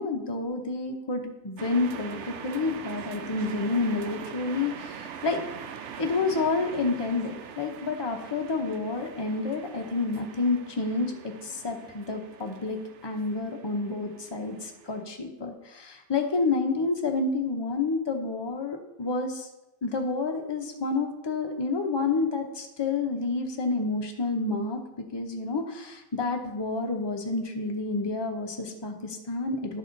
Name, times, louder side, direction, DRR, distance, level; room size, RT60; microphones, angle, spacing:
voice 1, 0.0-5.4 6.0-11.1 11.4-12.8 13.0-19.5 19.8-29.8, left 3 dB, 25° left, 3 dB, 0.6 m, -29 dB
sound 1, 1.6-15.0, right 7 dB, 65° right, 0.8 m, -43 dB
11.0 x 4.1 x 3.9 m, 0.97 s
omnidirectional pair, 1.5 m